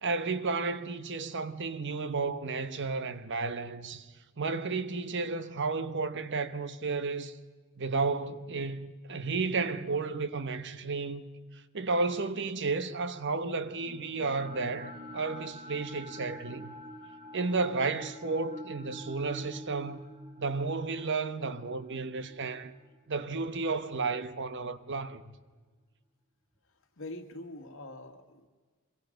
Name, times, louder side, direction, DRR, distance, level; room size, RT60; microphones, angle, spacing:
voice 1, 0.0-4.1 4.4-7.4 7.8-11.2 11.7-16.7 17.3-20.0 20.4-22.7 23.1-25.4, right 4 dB, 60° right, 1.1 m, -32 dB
sound 1, 13.8-24.0, equal, 25° right, 5.4 m, -47 dB
voice 2, 27.0-28.5, left 2 dB, 65° left, 2.0 m, -44 dB
25.5 x 22.5 x 5.2 m
head